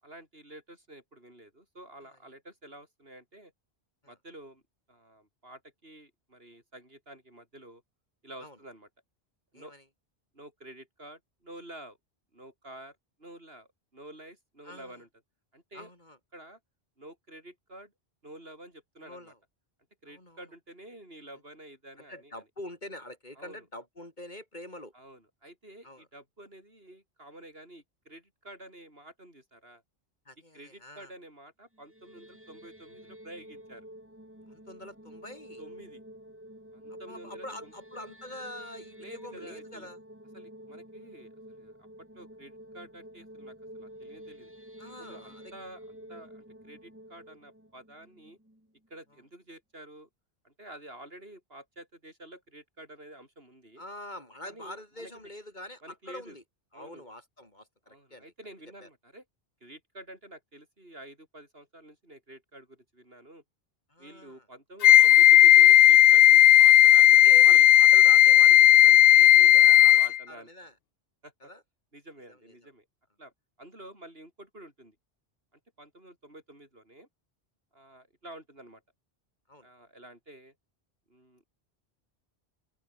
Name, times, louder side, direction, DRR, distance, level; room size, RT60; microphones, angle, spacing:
voice 1, 0.0-3.5 4.1-4.6 4.9-7.8 8.2-8.9 9.5-9.8 10.3-12.0 12.3-15.1 15.5-15.9 16.3-16.6 17.0-17.9 18.2-19.3 20.0-22.4 23.4-23.6 24.9-29.8 30.5-33.9 35.6-36.0 36.7-37.7 39.0-39.9 40.3-41.9 42.1-44.5 45.0-48.4 48.9-50.1 50.4-53.8 54.4-55.1 55.8-56.4 56.7-57.0 57.9-59.2 59.6-63.4 64.0-67.7 68.5-69.0 69.3-70.5 71.2-71.5 71.9-72.9 73.2-73.3 73.6-75.0 75.5-77.1 77.7-78.8 79.6-80.5 81.1-81.4, right 1 dB, 70° right, 8.0 m, -50 dB
voice 2, 9.5-9.8 14.6-15.0 15.7-16.2 19.0-19.4 20.1-20.4 22.0-24.9 25.8-26.1 30.3-31.1 34.5-35.6 36.9-40.0 44.8-45.5 53.8-56.4 56.7-58.3 58.8-58.9 63.9-64.5 67.0-70.0 70.3-70.7 71.4-71.6 72.3-72.7 79.5-79.7, left 1 dB, 45° left, 5.4 m, -45 dB
sound 1, 31.7-48.9, equal, 10° right, 4.7 m, -49 dB
Wind instrument woodwind instrument, 64.8-70.2, left 12 dB, 70° left, 0.8 m, -15 dB
open air
omnidirectional pair, 1.0 m